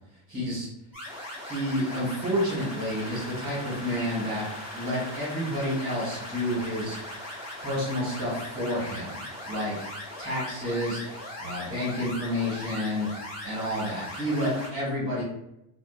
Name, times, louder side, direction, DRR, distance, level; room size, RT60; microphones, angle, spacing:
voice 1, 0.3-0.7 1.4-4.4 4.7-7.0 7.6-9.9 10.2-11.0 11.4-13.1 13.4-15.2, equal, 20° right, -6 dB, 1.4 m, -30 dB
sound 1, 0.9-14.7, left 1 dB, 5° left, 1.2 m, -39 dB
2.5 x 2.4 x 2.4 m, 0.82 s
cardioid pair, 170°, 48 cm